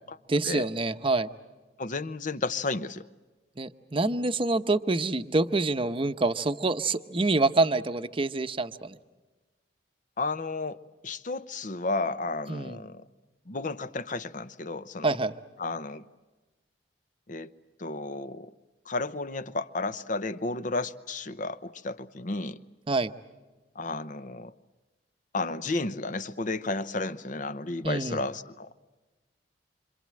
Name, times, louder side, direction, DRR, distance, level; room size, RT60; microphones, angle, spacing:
voice 1, 0.3-1.3 3.6-9.0 12.5-12.8 15.0-15.3 22.9-23.1 27.8-28.2, right 3 dB, 30° right, 0.8 m, -26 dB
voice 2, 1.8-3.1 10.2-13.0 13.5-15.2 15.6-16.0 17.3-17.5 17.8-18.5 18.9-22.6 23.8-24.5 25.3-28.7, left 3 dB, 45° left, 0.8 m, -32 dB
27.0 x 26.0 x 7.6 m
head